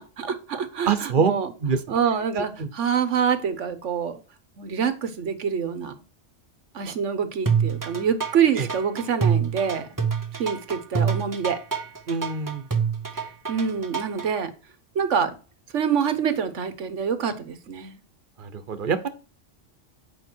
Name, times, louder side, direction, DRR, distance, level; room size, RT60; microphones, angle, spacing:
voice 1, 0.0-1.5 1.9-4.2 4.6-5.9 6.7-9.9 10.3-11.6 13.5-14.5 14.9-15.4 15.7-18.0, right 7 dB, 85° right, 1.4 m, -26 dB
voice 2, 0.9-1.3 1.6-2.0 2.4-2.7 8.6-8.7 12.1-12.7 18.4-19.1, right 6 dB, 50° right, 1.1 m, -25 dB
sound 1, 7.5-14.3, right 6 dB, 20° right, 0.8 m, -26 dB
8.3 x 5.2 x 4.5 m
omnidirectional pair, 1.2 m